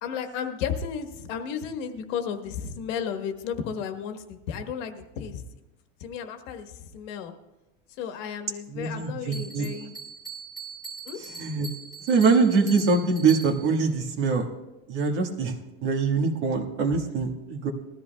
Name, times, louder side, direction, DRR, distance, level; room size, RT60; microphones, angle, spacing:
voice 1, 0.0-5.4 6.0-7.3 8.0-9.9 11.0-11.2, left 7 dB, 75° left, 6 dB, 1.4 m, -33 dB
voice 2, 8.7-9.6 11.4-11.7 12.1-14.5 14.9-15.5 15.8-17.7, right 4 dB, 65° right, 1 dB, 1.7 m, -23 dB
Bell, 9.3-13.8, right 4 dB, 10° right, 1.9 m, -41 dB
20.5 x 13.5 x 2.3 m, 1.0 s
cardioid pair, 180°, 38 cm